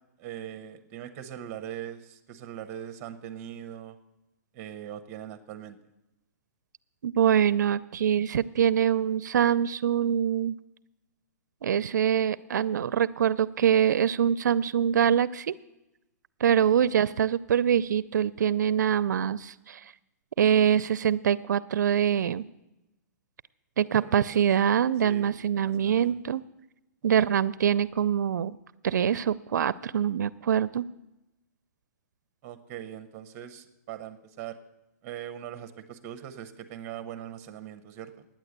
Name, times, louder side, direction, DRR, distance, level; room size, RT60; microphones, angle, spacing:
voice 1, 0.2-4.0 4.5-5.8 16.7-17.0 23.9-24.5 25.0-26.2 27.2-27.4 32.4-34.6 35.0-38.3, right 10 dB, 20° right, 10 dB, 0.8 m, -41 dB
voice 2, 7.0-10.5 11.6-15.5 16.4-19.8 20.4-22.5 23.8-26.4 27.0-28.6 28.8-30.8, right 9 dB, 85° right, 19 dB, 0.4 m, -24 dB
9.9 x 9.1 x 8.0 m, 0.94 s
hypercardioid pair, 170°, 9 cm